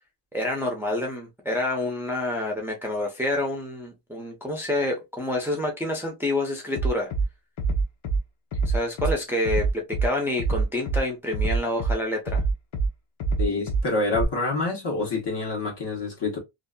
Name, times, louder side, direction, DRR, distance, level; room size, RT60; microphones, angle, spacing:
voice 1, 0.3-7.1 8.7-12.4, left 1 dB, 5° right, 0.5 m, -28 dB
Bass drum, 6.8-7.2 7.6-8.2 8.5-9.1 9.5-10.1 10.4-11.0 11.3-11.9 12.3-12.9 13.2-13.8 14.1-14.2, right 4 dB, 75° left, 0.8 m, -24 dB
voice 2, 13.4-16.4, left 3 dB, 55° left, 1.3 m, -27 dB
2.6 x 2.5 x 2.2 m
wide cardioid pair, 150°, 49 cm